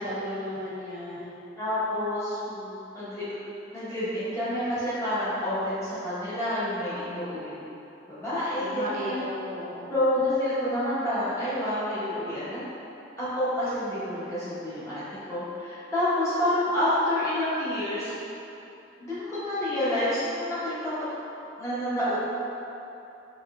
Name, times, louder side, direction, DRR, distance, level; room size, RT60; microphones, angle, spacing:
voice 1, 0.0-1.4 2.3-2.9 8.6-9.9, equal, 45° right, -8 dB, 0.7 m, -35 dB
voice 2, 1.6-2.4 2.9-3.3 3.7-7.8 8.1-9.3 9.9-12.6 13.2-15.0 15.3-18.2 19.0-20.9 21.6-22.2, left 1 dB, 15° left, -12 dB, 1.1 m, -28 dB
4.2 x 3.2 x 2.3 m, 2.9 s
head